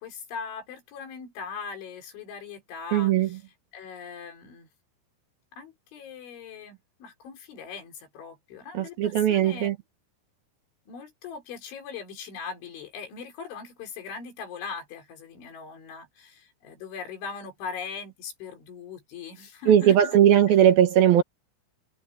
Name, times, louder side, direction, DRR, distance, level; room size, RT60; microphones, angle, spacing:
voice 1, 0.0-3.4 3.7-4.7 5.5-9.7 10.9-20.2 20.5-20.6, left 6 dB, 80° left, 6.6 m, -40 dB
voice 2, 2.9-3.3 8.7-9.8 19.7-21.2, right 10 dB, 65° right, 2.8 m, -19 dB
omnidirectional pair, 5.3 m